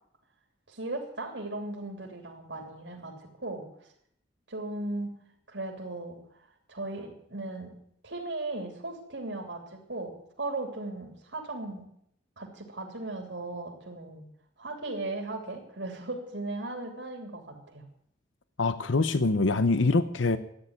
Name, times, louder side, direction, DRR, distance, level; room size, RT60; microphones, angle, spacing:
voice 1, 0.7-3.7 4.5-5.2 5.5-6.2 6.7-7.7 8.0-11.9 12.4-14.3 14.6-17.8, right 2 dB, 70° right, 0 dB, 3.2 m, -37 dB
voice 2, 18.6-20.4, left 3 dB, 85° left, 12 dB, 0.9 m, -24 dB
13.5 x 9.9 x 9.7 m, 0.70 s
head